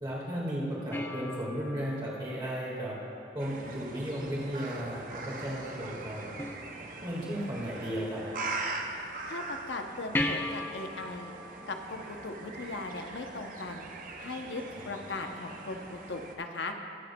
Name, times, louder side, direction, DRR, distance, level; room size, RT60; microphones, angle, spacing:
voice 1, 0.0-3.0 3.3-6.4 7.0-8.3 14.8-14.9, equal, 25° right, -7 dB, 1.8 m, -35 dB
sound 1, 0.9-3.5 6.4-7.4 10.1-13.1 16.1-16.2, left 1 dB, 15° left, 0.4 m, -38 dB
sound 2, 3.4-16.4, right 3 dB, 50° right, 0.8 m, -42 dB
voice 2, 9.3-11.3 11.7-13.9 14.2-16.7, left 2 dB, 85° left, 5 dB, 0.7 m, -38 dB
22.0 x 7.8 x 2.2 m, 2.8 s
head